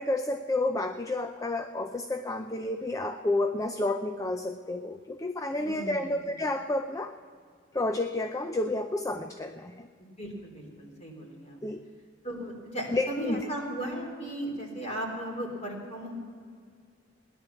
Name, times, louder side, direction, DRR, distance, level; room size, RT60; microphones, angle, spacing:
voice 1, 0.0-7.1 7.7-9.9 11.6-11.8 12.9-13.4, left 2 dB, 15° left, 7 dB, 0.5 m, -30 dB
voice 2, 5.6-6.2 10.2-11.6 12.2-16.2, right 1 dB, 35° left, 0 dB, 3.8 m, -36 dB
17.5 x 11.0 x 7.0 m, 2.1 s
head